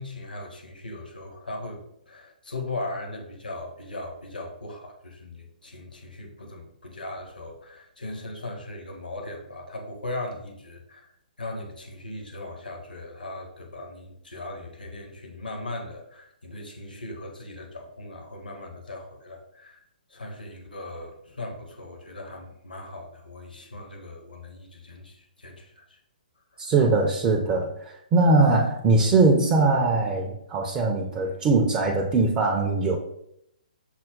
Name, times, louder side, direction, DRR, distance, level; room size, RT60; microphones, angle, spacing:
voice 1, 0.0-11.1 11.4-19.8 20.1-26.0, left 2 dB, 75° left, 2 dB, 1.1 m, -38 dB
voice 2, 26.7-33.0, right 3 dB, 20° right, -1 dB, 0.4 m, -21 dB
6.1 x 2.1 x 3.7 m, 0.75 s
figure-of-eight pair, 125°, 5 cm